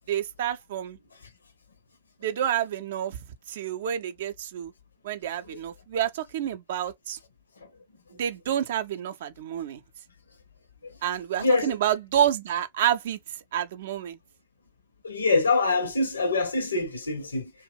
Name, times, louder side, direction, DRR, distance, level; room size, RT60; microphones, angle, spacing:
voice 1, 0.1-1.0 2.2-3.2 3.5-4.7 5.0-7.2 8.2-9.8 11.0-13.2 13.5-14.2, right 10 dB, 60° right, 0.4 m, -28 dB
voice 2, 11.4-11.8 15.0-17.5, left 3 dB, 75° left, 0.6 m, -24 dB
2.3 x 2.0 x 3.2 m
figure-of-eight pair, 90°, 0 cm